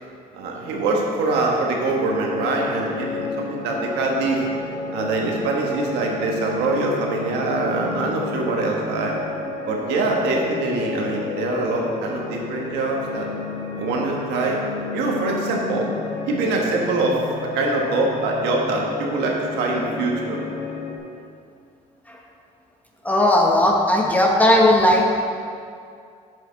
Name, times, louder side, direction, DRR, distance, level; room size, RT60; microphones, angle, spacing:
voice 1, 0.3-4.4 4.9-9.1 9.7-13.3 13.8-14.6 14.9-15.9 16.2-20.4, right 3 dB, 85° right, -1 dB, 1.4 m, -24 dB
sound 1, 1.8-21.0, left 4 dB, 40° left, 1.7 m, -31 dB
voice 2, 23.0-25.1, left 1 dB, 10° left, -1 dB, 1.0 m, -16 dB
7.9 x 6.8 x 4.0 m, 2.3 s
cardioid pair, 110°, 17 cm